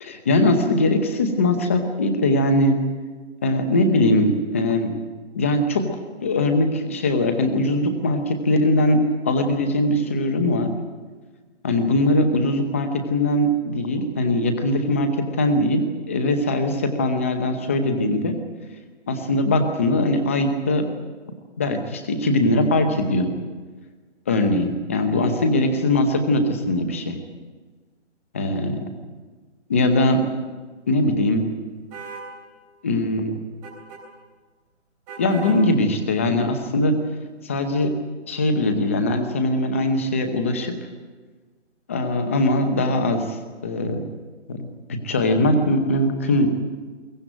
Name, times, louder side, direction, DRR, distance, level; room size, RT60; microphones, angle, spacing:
voice 1, 0.0-2.8 3.4-4.9 5.3-5.9 6.2-10.7 11.6-18.4 19.1-21.0 21.6-23.3 24.3-27.2 28.3-28.8 29.7-30.2 30.9-31.4 32.8-33.4 35.2-37.0 37.4-37.9 38.3-40.7 41.9-43.4 43.6-44.1 44.5-44.7 45.0-46.5, left 1 dB, 10° left, 6 dB, 0.9 m, -21 dB
sound 1, 31.9-32.3 33.6-34.0 35.1-35.6, right 5 dB, 15° right, 3.8 m, -37 dB
22.5 x 17.0 x 8.9 m, 1.4 s
hypercardioid pair, 165°, 36 cm